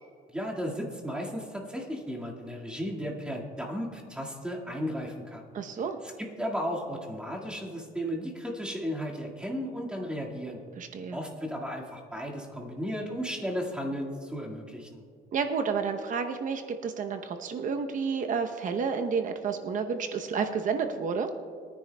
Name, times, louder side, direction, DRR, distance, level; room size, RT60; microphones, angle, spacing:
voice 1, 0.3-5.4 6.0-10.6 11.1-15.0, equal, 5° right, -2 dB, 1.9 m, -35 dB
voice 2, 5.5-6.0 10.8-11.2 15.3-21.3, right 5 dB, 50° right, 6 dB, 0.8 m, -30 dB
22.0 x 10.0 x 2.2 m, 2.3 s
cardioid pair, 110°, 17 cm